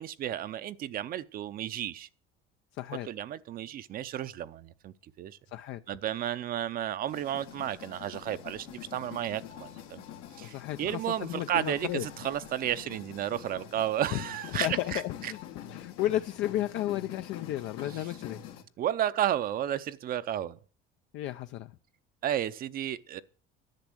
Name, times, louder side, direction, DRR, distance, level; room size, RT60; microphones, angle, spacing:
voice 1, 0.0-2.1 3.0-5.4 5.9-10.0 10.4-15.3 17.9-18.0 18.8-20.6 22.2-23.2, right 11 dB, 45° right, 0.6 m, -33 dB
voice 2, 2.8-3.1 5.5-5.8 10.4-12.1 14.1-14.2 14.5-18.4 21.1-21.7, left 14 dB, 65° left, 0.6 m, -33 dB
sound 1, 7.1-18.6, left 10 dB, 85° left, 1.8 m, -46 dB
10.5 x 7.2 x 7.7 m
cardioid pair, 150°, 21 cm